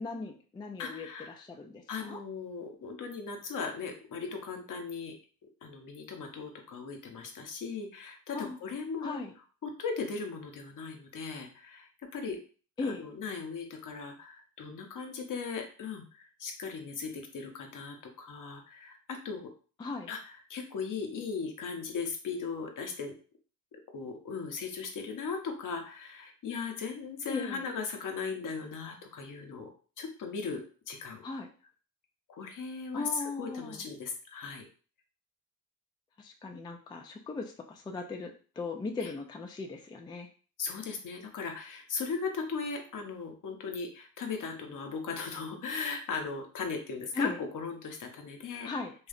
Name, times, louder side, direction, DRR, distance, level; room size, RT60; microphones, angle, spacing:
voice 1, 0.0-2.2 8.3-8.6 9.0-9.3 12.8-13.0 19.8-20.1 27.3-27.7 31.2-31.5 32.9-33.8 36.2-40.3 47.1-47.4 48.6-48.9, left 3 dB, 15° left, 2 dB, 0.3 m, -38 dB
voice 2, 0.8-1.4 1.9-5.1 5.6-9.2 9.6-12.4 12.8-19.5 20.1-23.1 23.7-29.7 30.0-31.2 32.3-34.7 39.0-39.1 40.6-48.7, left 5 dB, 55° left, 4 dB, 0.7 m, -38 dB
2.7 x 2.0 x 2.5 m, 0.39 s
supercardioid pair, 60°, 38 cm